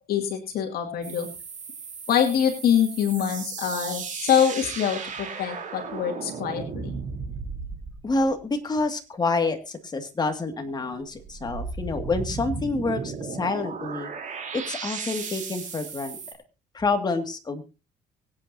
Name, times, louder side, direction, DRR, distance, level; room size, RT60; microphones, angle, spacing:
voice 1, 0.1-1.3 2.1-6.9, left 8 dB, 65° left, 3 dB, 2.5 m, -24 dB
sound 1, 1.0-8.4 11.1-16.3, right 5 dB, 45° right, 3.8 m, -35 dB
voice 2, 8.0-14.1 14.5-16.2 16.7-17.6, left 3 dB, 25° left, 5 dB, 2.3 m, -28 dB
24.5 x 8.9 x 2.8 m, 0.30 s
cardioid pair, 110°, 17 cm